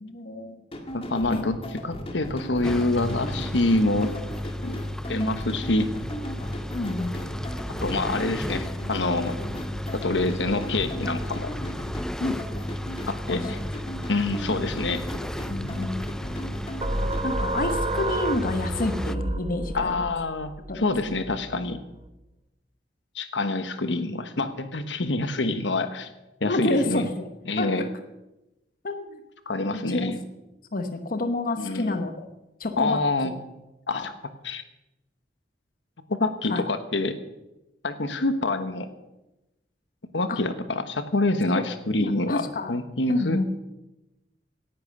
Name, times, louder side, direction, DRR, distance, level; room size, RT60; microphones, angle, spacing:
voice 1, 0.0-0.6 1.3-1.4 6.7-7.3 12.2-12.4 13.3-13.4 14.5-14.6 15.5-16.0 17.2-20.1 20.7-20.9 26.4-27.3 27.6-27.8 28.8-29.2 29.9-30.1 30.7-32.3 32.6-33.0 33.9-34.1 36.5-36.6 40.3-40.4 42.0-42.7 43.1-43.4, left 2 dB, 50° left, 7 dB, 1.1 m, -29 dB
sound 1, 0.7-17.3, equal, 35° left, 2.1 m, -37 dB
voice 2, 0.9-1.6 1.8-4.2 4.6-4.8 5.1-5.9 7.8-9.3 9.9-11.5 13.1-13.6 14.1-15.0 19.7-21.8 23.1-26.1 26.4-27.1 27.5-27.9 29.5-30.2 31.6-32.0 32.8-33.3 33.9-34.1 34.4-34.6 36.1-37.2 37.8-38.9 40.1-42.4 42.7-43.4, left 2 dB, 85° left, 10 dB, 1.3 m, -26 dB
sound 2, 2.6-19.2, left 1 dB, 5° left, 0.4 m, -34 dB
sound 3, 16.8-22.1, right 2 dB, 30° right, 0.9 m, -30 dB
17.5 x 10.5 x 6.6 m, 0.96 s
head